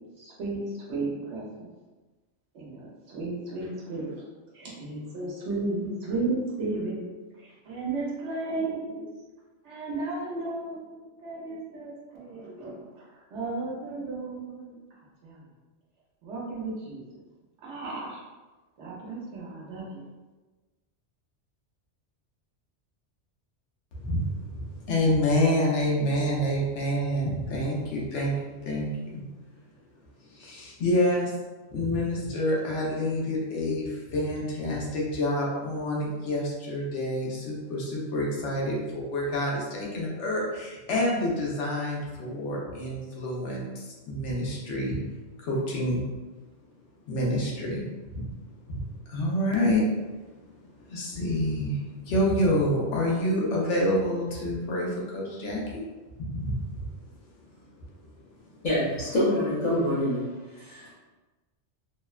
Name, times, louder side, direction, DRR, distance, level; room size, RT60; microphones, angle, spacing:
voice 1, 0.2-0.6 0.9-1.7 2.5-4.2 4.5-9.1 9.6-15.4 16.2-17.0 17.6-18.2 18.8-20.0, right 3 dB, 75° right, -5 dB, 1.0 m, -34 dB
voice 2, 23.9-29.3 29.7-29.8 30.2-31.3 31.7-45.0 45.4-46.0 47.1-55.8 56.2-58.6, left 1 dB, 75° left, -3 dB, 1.0 m, -28 dB
voice 3, 58.6-60.2 60.5-60.9, left 1 dB, 45° left, -12 dB, 0.8 m, -26 dB
2.8 x 2.1 x 2.3 m, 1.2 s
omnidirectional pair, 1.2 m